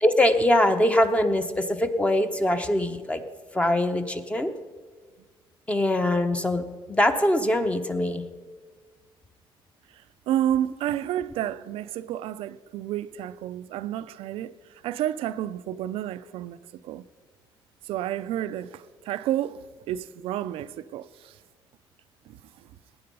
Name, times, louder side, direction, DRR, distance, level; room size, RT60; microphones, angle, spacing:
voice 1, 0.0-3.2 3.5-4.5 5.7-6.6 6.9-8.2, left 1 dB, 15° left, 0.9 m, -22 dB
voice 2, 10.3-14.6 14.8-17.1 17.9-21.3 22.3-22.4, right 11 dB, 85° right, 0.5 m, -30 dB
18.0 x 9.4 x 5.4 m
cardioid pair, 115°, 9 cm